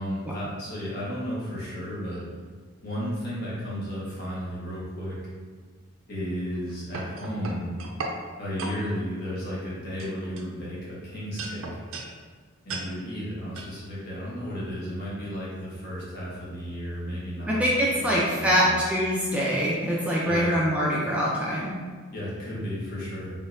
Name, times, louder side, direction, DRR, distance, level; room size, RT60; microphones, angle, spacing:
voice 1, 0.0-2.2 2.8-5.2 6.1-7.7 8.4-11.8 12.6-17.6 17.9-18.8 20.2-20.5 22.1-23.3, equal, 50° left, -8 dB, 1.4 m, -33 dB
sound 1, 6.5-8.2 8.6-8.8 9.4-9.7 10.0-10.9 11.4-12.1 12.7-12.9 13.5-13.7, right 3 dB, 80° right, 0.5 m, -36 dB
voice 2, 17.5-21.7, equal, 5° right, -6 dB, 0.5 m, -24 dB
3.8 x 3.5 x 2.6 m, 1.5 s
head